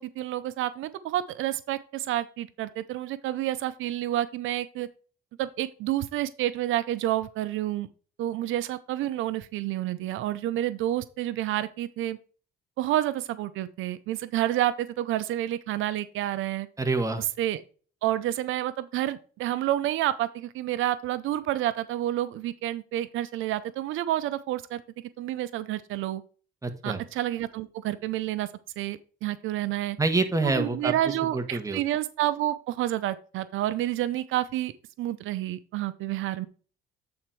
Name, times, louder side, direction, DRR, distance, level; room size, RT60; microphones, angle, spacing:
voice 1, 0.0-4.9 5.4-7.9 8.2-12.2 12.8-16.7 17.4-17.6 18.0-24.8 25.2-26.2 26.8-28.5 28.8-30.0 30.4-34.7 35.0-36.5, right 13 dB, 85° right, 14 dB, 0.6 m, -29 dB
voice 2, 16.8-17.2 26.6-27.0 30.0-30.9 31.3-31.8, right 3 dB, 15° right, 6 dB, 1.4 m, -26 dB
8.6 x 4.3 x 4.5 m, 0.39 s
cardioid pair, 90°, 20 cm